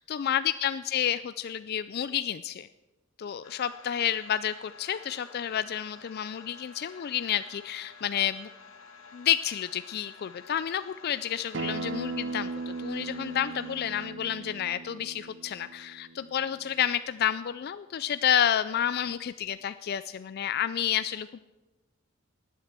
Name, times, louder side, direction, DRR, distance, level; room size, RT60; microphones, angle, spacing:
voice 1, 0.0-2.7 3.2-8.5 9.1-21.4, left 10 dB, 50° left, 13 dB, 0.4 m, -30 dB
sound 1, 3.4-14.1, left 5 dB, 80° left, 1.6 m, -51 dB
Acoustic guitar, 11.5-16.7, right 3 dB, 60° right, 0.6 m, -38 dB
19.5 x 7.4 x 7.5 m, 1.1 s
head